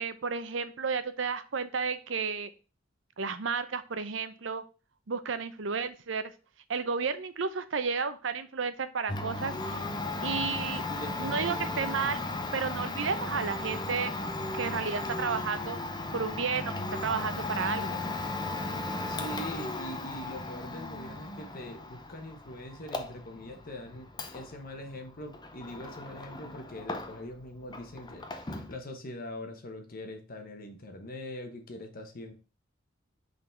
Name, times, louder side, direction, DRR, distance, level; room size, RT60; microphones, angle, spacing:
voice 1, 0.0-2.5 3.2-4.6 5.1-6.3 6.7-9.8 10.2-10.8 11.2-12.2 12.5-14.1 14.5-15.8 16.1-18.0, right 5 dB, 75° right, 12 dB, 0.7 m, -32 dB
Domestic sounds home sounds, 9.1-27.4 27.7-28.8, left 2 dB, 20° left, 0.7 m, -36 dB
voice 2, 10.9-12.2 19.0-32.3, left 1 dB, 50° left, 5 dB, 1.0 m, -43 dB
5.6 x 3.9 x 4.4 m, 0.33 s
head